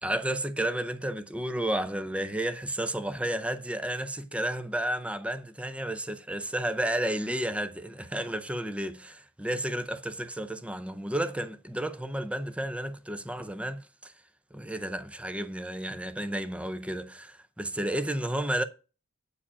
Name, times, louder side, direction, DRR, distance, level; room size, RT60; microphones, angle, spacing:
voice 1, 0.0-14.1 14.5-18.6, right 1 dB, 5° right, 0.6 m, -32 dB
8.5 x 4.9 x 5.6 m
head